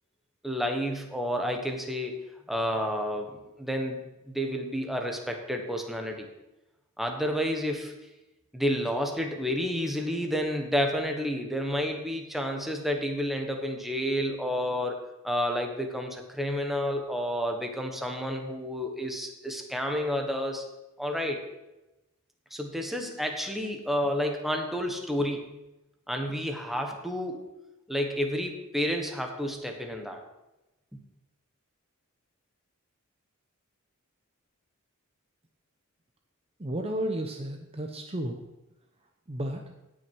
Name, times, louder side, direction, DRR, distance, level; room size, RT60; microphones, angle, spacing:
voice 1, 0.4-4.0 4.3-6.3 7.0-7.9 8.5-15.0 15.2-20.6 21.0-21.4 22.5-25.5 26.1-27.4 27.9-30.2 30.9-31.0, equal, ahead, 2 dB, 1.3 m, -30 dB
voice 2, 36.6-38.4 39.3-39.7, right 1 dB, 30° right, 3 dB, 0.8 m, -33 dB
17.0 x 6.3 x 4.7 m, 0.98 s
head